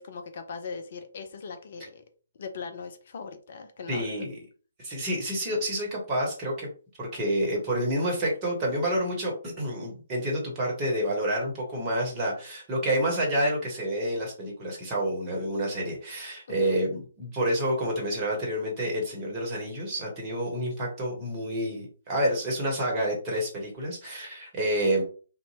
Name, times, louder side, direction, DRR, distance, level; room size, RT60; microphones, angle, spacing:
voice 1, 0.0-2.0 2.4-4.2 16.6-16.8, left 5 dB, 45° left, 7 dB, 0.4 m, -39 dB
voice 2, 3.9-4.4 4.8-6.7 7.0-25.0, right 1 dB, 20° right, -2 dB, 1.0 m, -28 dB
2.6 x 2.1 x 2.8 m, 0.38 s
figure-of-eight pair, 135°, 0 cm